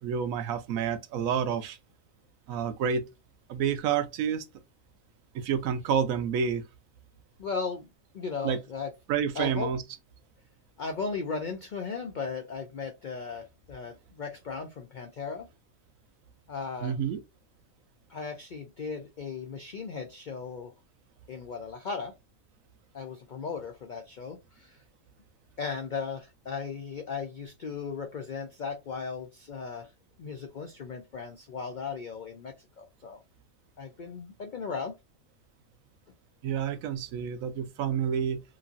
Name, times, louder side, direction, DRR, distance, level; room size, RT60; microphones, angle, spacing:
voice 1, 0.0-1.8 2.5-3.0 3.5-4.5 5.3-6.6 8.4-8.6 9.1-9.8 16.8-17.2 36.4-38.4, right 7 dB, 75° right, 1.0 m, -29 dB
voice 2, 7.4-7.9 8.1-8.9 9.4-9.7 10.8-15.5 16.5-16.9 18.1-20.7 21.3-22.1 22.9-24.8 25.6-29.9 30.2-33.2 33.8-34.9, left 5 dB, 70° left, 0.4 m, -36 dB
3.0 x 2.5 x 2.5 m
omnidirectional pair, 1.5 m